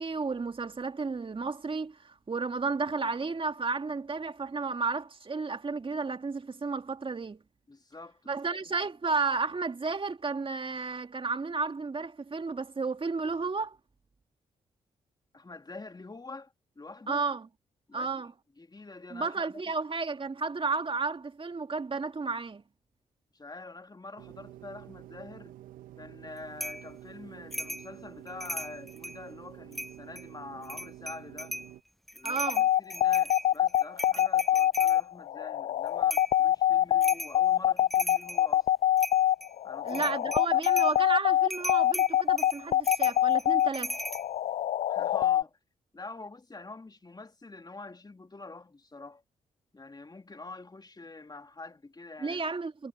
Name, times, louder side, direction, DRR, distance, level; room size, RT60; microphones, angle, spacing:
voice 1, 0.0-7.4 8.3-13.8 17.1-17.5 17.9-18.3 19.1-22.6 32.2-32.7 39.8-44.0 52.2-52.9, right 4 dB, 40° right, 2.1 m, -32 dB
voice 2, 7.7-8.7 15.3-17.3 17.9-18.2 18.6-19.4 23.3-25.6 26.0-31.6 32.1-38.7 39.6-40.3 44.9-45.6 45.9-49.2 49.7-52.4, left 3 dB, 30° left, 2.8 m, -46 dB
sound 1, 24.2-31.8, right 13 dB, 75° right, 1.2 m, -49 dB
sound 2, 26.6-26.9 27.5-27.9 28.3-29.2 29.7-30.2 30.6-31.7 32.1-35.0 36.1-36.4 37.0-37.4 37.8-38.5 39.0-39.5 39.9-41.0 41.5-44.2, equal, ahead, 0.9 m, -38 dB
sound 3, 32.5-45.4, left 12 dB, 60° left, 0.4 m, -24 dB
hypercardioid pair, 40°, 14 cm